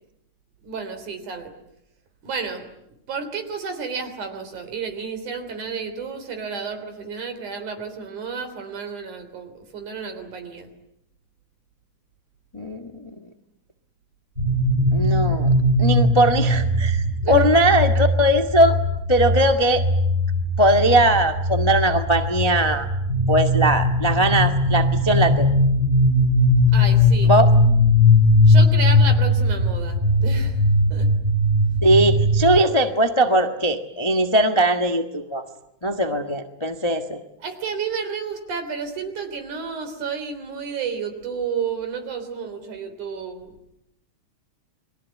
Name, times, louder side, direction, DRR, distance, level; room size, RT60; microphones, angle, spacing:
voice 1, 0.6-1.5 2.2-2.7 3.1-10.7 17.2-17.5 26.7-27.3 28.5-30.6 30.9-31.1 37.4-43.5, right 5 dB, 85° right, 8 dB, 4.9 m, -31 dB
voice 2, 12.5-13.1 14.9-15.5 15.8-18.8 19.1-19.8 20.6-22.9 23.3-25.5 27.2-27.5 31.8-35.4 35.8-37.2, right 1 dB, 20° left, 5 dB, 0.6 m, -20 dB
sound 1, 14.4-32.6, left 1 dB, 20° right, 4.4 m, -19 dB
30.0 x 22.5 x 8.5 m, 0.80 s
omnidirectional pair, 3.4 m